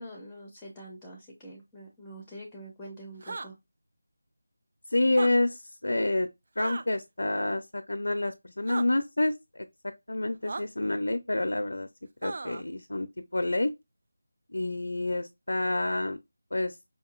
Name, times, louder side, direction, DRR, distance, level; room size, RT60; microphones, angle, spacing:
voice 1, 0.0-3.6, right 1 dB, 5° left, 0.7 m, -45 dB
sound 1, 3.2-3.5 5.1-5.3 6.6-6.8 8.7-8.9 10.5-10.6 12.2-12.6, right 3 dB, 45° right, 0.4 m, -36 dB
voice 2, 4.9-6.3 6.6-9.7 10.1-11.9 12.2-13.1 13.3-13.7 14.5-16.2 16.5-16.8, left 2 dB, 80° left, 0.5 m, -28 dB
5.2 x 2.9 x 2.4 m
figure-of-eight pair, 170°, 0 cm